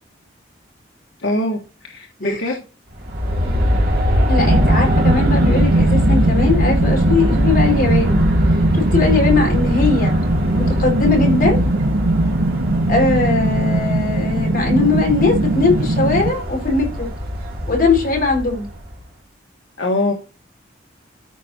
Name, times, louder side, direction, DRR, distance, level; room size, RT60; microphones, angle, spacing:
voice 1, 1.2-2.6 19.8-20.1, left 1 dB, 75° left, 1.5 m, -22 dB
Aircraft, 2.9-19.0, equal, 50° right, 2.8 m, -22 dB
voice 2, 4.3-8.2 8.7-10.1 10.5-11.6 12.9-17.1 17.7-18.7, left 3 dB, 45° left, 5.0 m, -19 dB
sound 1, 4.4-16.3, right 2 dB, 90° right, 1.0 m, -19 dB
13.5 x 5.5 x 2.9 m
head